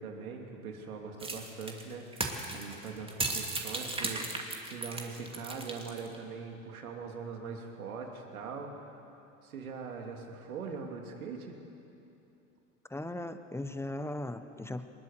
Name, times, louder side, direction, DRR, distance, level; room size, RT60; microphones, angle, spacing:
voice 1, 0.0-9.2 9.4-11.6, right 5 dB, 85° right, 2 dB, 3.0 m, -42 dB
sound 1, 1.2-6.2, right 2 dB, 15° right, 2.6 m, -36 dB
voice 2, 12.9-14.9, left 1 dB, 5° left, 10 dB, 1.1 m, -38 dB
22.5 x 20.5 x 6.8 m, 2.9 s
hypercardioid pair, 90°, 42 cm